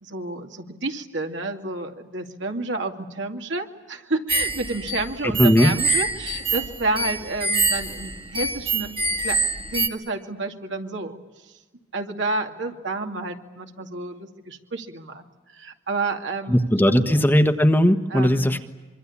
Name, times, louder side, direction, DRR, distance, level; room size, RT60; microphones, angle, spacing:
voice 1, 0.0-8.9 9.2-11.2 11.9-15.2 15.5-16.6 16.9-17.3 18.1-18.5, right 3 dB, 70° right, 3 dB, 2.5 m, -30 dB
sound 1, 4.3-9.9, right 3 dB, 25° right, 1.8 m, -25 dB
voice 2, 5.4-5.7 16.5-18.7, equal, 10° left, 7 dB, 1.2 m, -18 dB
25.5 x 24.5 x 8.6 m, 1.2 s
head